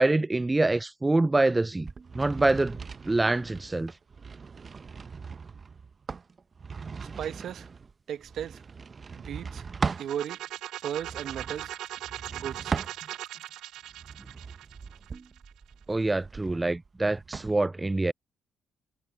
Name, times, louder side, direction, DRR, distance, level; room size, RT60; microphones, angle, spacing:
voice 1, 0.0-1.9 2.1-2.8 3.1-3.9 15.9-18.1, right 2 dB, 15° right, 0.4 m, -25 dB
sound 1, 1.8-10.1 10.9-13.4 13.9-17.5, right 5 dB, 35° right, 0.8 m, -39 dB
voice 2, 7.0-7.7 8.1-8.6 9.1-9.6 10.0-10.4 10.8-11.7 12.3-12.8, right 9 dB, 70° right, 1.1 m, -36 dB
sound 2, 9.9-15.7, right 13 dB, 85° right, 0.5 m, -40 dB
cardioid pair, 90°, 0 cm